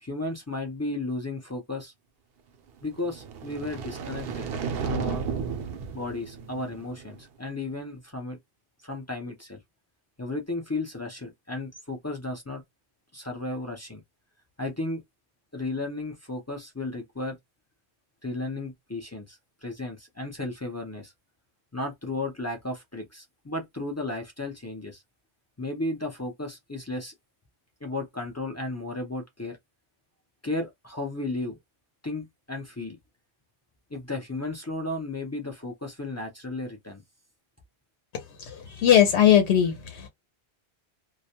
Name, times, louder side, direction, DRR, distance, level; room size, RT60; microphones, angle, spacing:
voice 1, 0.0-1.9 2.8-4.5 4.8-5.2 5.9-8.4 8.8-9.6 10.2-12.6 13.1-14.0 14.6-15.0 15.5-17.4 18.2-21.1 21.7-25.0 25.6-27.1 27.8-29.6 30.4-31.6 32.0-33.0 33.9-37.0, left 2 dB, 25° left, 0.4 m, -34 dB
sound 1, 2.9-7.2, right 6 dB, 65° right, 0.7 m, -33 dB
voice 2, 38.4-40.1, left 10 dB, 80° left, 0.9 m, -20 dB
2.3 x 2.1 x 2.8 m
omnidirectional pair, 1.1 m